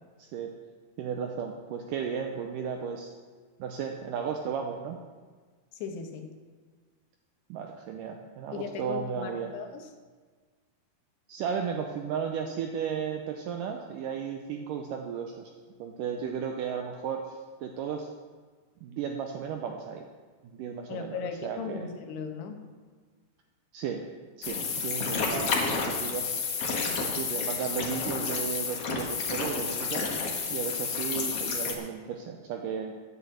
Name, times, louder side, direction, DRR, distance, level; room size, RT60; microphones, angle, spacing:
voice 1, 0.2-0.5 1.0-3.1 3.6-5.0 7.5-9.5 11.3-15.5 15.8-18.1 18.8-20.1 20.4-21.9 23.7-24.0 24.4-26.4 26.7-30.1 30.5-32.9, right 7 dB, 80° right, 3 dB, 1.9 m, -34 dB
voice 2, 5.7-6.3 8.5-9.9 20.9-22.6, left 6 dB, 85° left, 5 dB, 3.2 m, -37 dB
sound 1, 24.4-31.7, left 5 dB, 55° left, 1.8 m, -30 dB
9.4 x 8.2 x 7.9 m, 1.5 s
omnidirectional pair, 4.6 m